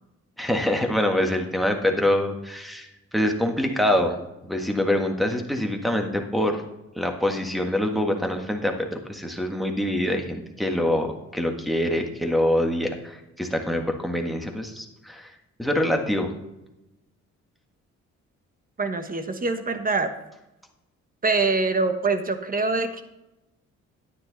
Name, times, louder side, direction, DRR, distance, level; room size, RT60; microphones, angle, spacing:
voice 1, 0.4-6.6 6.9-15.3 15.6-16.3, left 1 dB, ahead, 2 dB, 1.6 m, -25 dB
voice 2, 18.8-20.1 21.2-23.0, right 3 dB, 30° right, 8 dB, 1.2 m, -24 dB
10.0 x 9.5 x 4.1 m, 0.96 s
cardioid pair, 90°, 30 cm